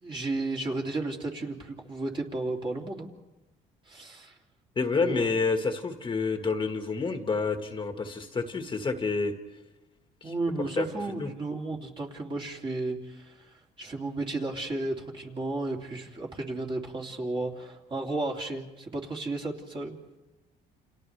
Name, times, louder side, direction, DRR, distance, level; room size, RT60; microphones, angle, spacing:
voice 1, 0.0-3.1 3.9-4.3 5.0-5.3 10.2-20.0, right 2 dB, 30° right, 0 dB, 2.8 m, -33 dB
voice 2, 4.8-9.3 10.2-10.3 10.8-11.3, left 4 dB, 30° left, 5 dB, 1.7 m, -29 dB
29.5 x 28.0 x 3.4 m, 1.1 s
cardioid pair, 110°, 17 cm